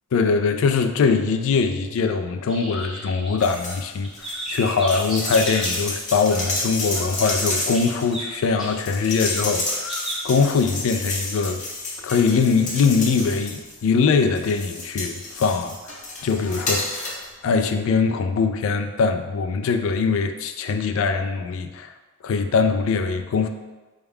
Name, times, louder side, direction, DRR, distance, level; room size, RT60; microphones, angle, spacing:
voice 1, 0.1-4.1 4.5-11.6 12.0-15.7 16.2-21.9 22.2-23.5, left 5 dB, 65° left, 7 dB, 0.3 m, -22 dB
sound 1, 2.5-3.7 4.0-5.8 6.3-6.6 6.9-8.7 9.9-10.2, right 1 dB, ahead, 0.6 m, -33 dB
sound 2, 3.4-3.8 4.1-13.9 14.3-17.3 17.6-17.7, left 2 dB, 35° left, 0.7 m, -30 dB
4.3 x 2.3 x 3.5 m, 1.2 s
head